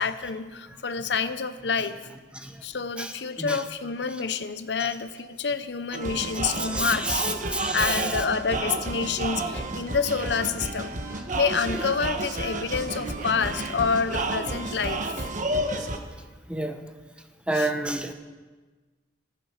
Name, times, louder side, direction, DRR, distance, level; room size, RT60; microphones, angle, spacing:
voice 1, 0.0-2.0 2.6-10.9 11.3-15.3 17.5-17.7, left 5 dB, 70° left, 11 dB, 0.8 m, -28 dB
sound 1, 5.9-16.0, right 2 dB, 45° right, 1.4 m, -31 dB
voice 2, 6.6-8.0 11.1-11.2 16.5-16.8 17.5-18.1, right 1 dB, 5° right, 6 dB, 1.1 m, -29 dB
26.0 x 9.2 x 5.7 m, 1.3 s
head